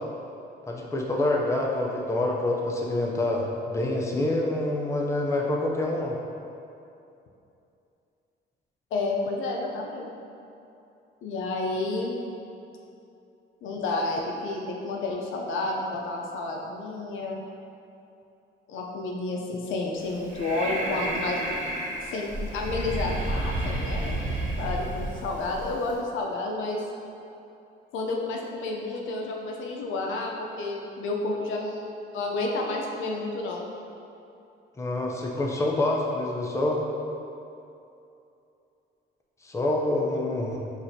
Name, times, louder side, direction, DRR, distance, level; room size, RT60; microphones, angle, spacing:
voice 1, 0.7-6.2 34.8-36.8 39.4-40.6, left 2 dB, 15° left, -1 dB, 0.5 m, -26 dB
voice 2, 8.9-10.1 11.2-12.2 13.6-17.4 18.7-21.4 22.0-24.2 24.6-26.8 27.9-33.7, left 2 dB, 80° left, 0 dB, 0.5 m, -30 dB
Breathing, 20.0-25.9, right 1 dB, 40° right, 1.1 m, -31 dB
6.0 x 2.5 x 2.7 m, 2.7 s
cardioid pair, 90°, 20 cm